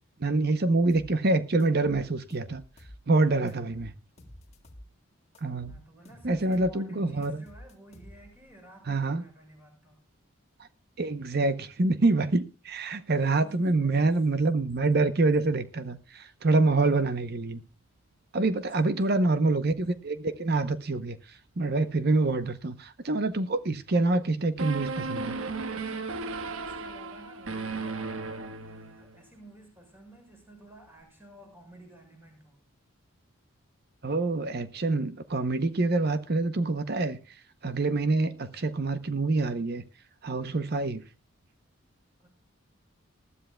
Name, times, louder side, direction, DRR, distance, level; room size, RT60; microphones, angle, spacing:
voice 1, 0.2-2.6 3.1-3.9 5.4-5.8 6.2-7.4 8.9-9.2 11.0-17.6 18.3-21.2 21.6-25.4 34.0-37.2 37.6-39.8 40.2-41.0, right 3 dB, 45° right, 0.7 m, -26 dB
sound 1, 0.9-1.1 1.6-3.0 3.5-4.9 5.3-6.8 7.2-8.4, equal, 30° left, 1.8 m, -50 dB
voice 2, 3.4-3.9 5.7-10.0 13.2-14.3 16.8-17.2 18.5-19.3 26.6-32.6 42.2-42.3, right 1 dB, 10° right, 6.0 m, -53 dB
sound 2, 24.6-29.2, right 3 dB, 75° right, 1.3 m, -35 dB
20.5 x 12.5 x 2.2 m
head